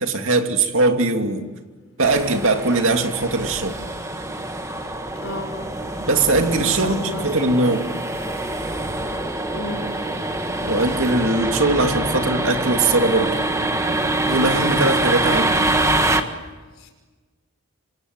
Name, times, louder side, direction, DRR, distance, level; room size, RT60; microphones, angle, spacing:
voice 1, 0.0-1.5 2.0-3.8 6.0-7.9 10.6-13.4 14.2-15.7, right 2 dB, 60° right, 5 dB, 2.6 m, -20 dB
sound 1, 2.0-16.2, right 2 dB, 15° right, 1.6 m, -25 dB
voice 2, 5.2-5.7 6.8-7.3 9.5-9.9 16.8-16.9, left 1 dB, 60° left, 4 dB, 5.9 m, -33 dB
28.0 x 26.5 x 8.0 m, 1.3 s
head